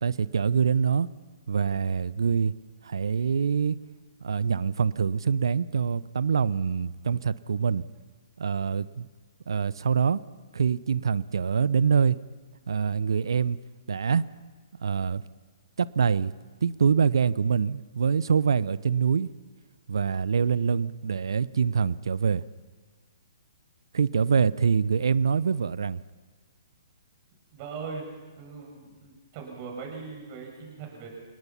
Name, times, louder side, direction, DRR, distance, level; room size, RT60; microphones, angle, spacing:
voice 1, 0.0-1.1 1.5-2.5 2.8-3.8 4.2-7.8 8.4-9.1 9.5-10.2 10.5-12.2 12.7-13.6 13.9-14.3 14.8-15.2 15.8-16.3 16.6-19.3 19.9-22.4 23.9-26.0, right 6 dB, 70° right, 19 dB, 0.7 m, -25 dB
voice 2, 27.5-28.1 28.4-31.1, right 5 dB, 35° right, 1 dB, 6.8 m, -40 dB
28.5 x 19.0 x 5.8 m, 1.4 s
figure-of-eight pair, 125°, 3 cm